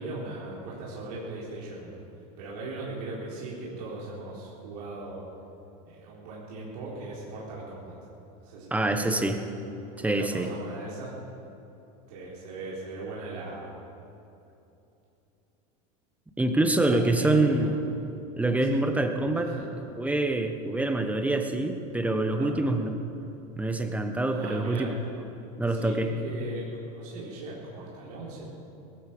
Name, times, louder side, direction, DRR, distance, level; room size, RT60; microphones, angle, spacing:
voice 1, 0.0-2.0 2.4-5.2 5.9-7.9 8.4-9.3 10.0-11.1 12.1-13.7 16.8-17.7 18.7-18.8 19.3-19.6 22.4-22.6 24.3-24.9 25.7-28.5, right 2 dB, 85° right, -6 dB, 4.0 m, -39 dB
voice 2, 8.7-9.4 10.0-10.5 16.4-17.7 18.4-19.5 19.9-22.9 23.6-24.9 25.6-26.1, right 2 dB, 5° right, 6 dB, 1.2 m, -25 dB
18.0 x 15.0 x 5.3 m, 2.9 s
supercardioid pair, 125°, 19 cm